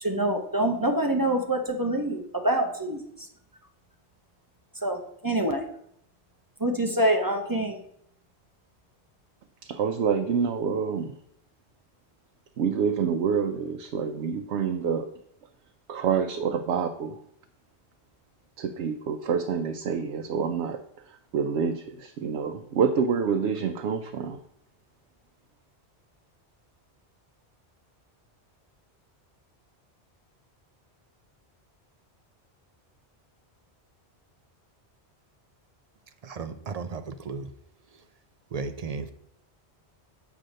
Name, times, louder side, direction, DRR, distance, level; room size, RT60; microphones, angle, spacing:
voice 1, 0.0-3.3 4.8-5.7 6.6-7.8, right 1 dB, 20° right, 0.7 m, -26 dB
voice 2, 9.7-11.1 12.6-15.1 15.9-17.2 18.6-20.8 21.1-24.4, right 6 dB, 85° right, 0.9 m, -27 dB
voice 3, 36.2-37.5 38.5-39.1, right 4 dB, 55° right, 0.4 m, -34 dB
7.5 x 3.4 x 6.4 m
omnidirectional pair, 1.1 m